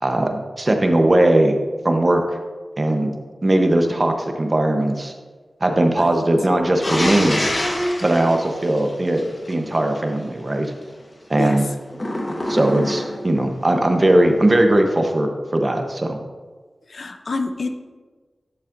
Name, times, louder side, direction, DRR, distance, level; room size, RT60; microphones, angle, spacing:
voice 1, 0.0-1.6 1.8-2.2 2.8-3.1 3.4-5.1 5.6-7.5 8.0-10.7 11.3-11.6 12.5-16.2, right 1 dB, 35° right, 4 dB, 0.9 m, -19 dB
sound 1, 6.8-9.5 11.9-13.4, left 1 dB, 35° left, 1.2 m, -25 dB
voice 2, 16.9-17.7, left 3 dB, 65° left, 6 dB, 0.6 m, -27 dB
11.0 x 7.3 x 2.6 m, 1.4 s
wide cardioid pair, 65°, 0 cm